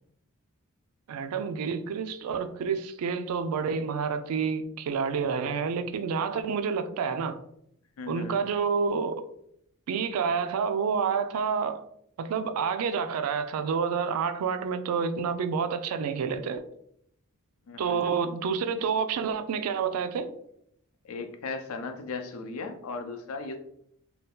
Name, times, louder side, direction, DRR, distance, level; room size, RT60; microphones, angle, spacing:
voice 1, 1.1-7.4 8.1-9.1 9.9-11.8 12.2-16.6 17.8-20.3, right 6 dB, 80° right, 0.3 m, -29 dB
voice 2, 8.0-8.4 17.7-18.1 21.0-23.6, left 4 dB, 75° left, 0.4 m, -37 dB
2.7 x 2.2 x 3.5 m
head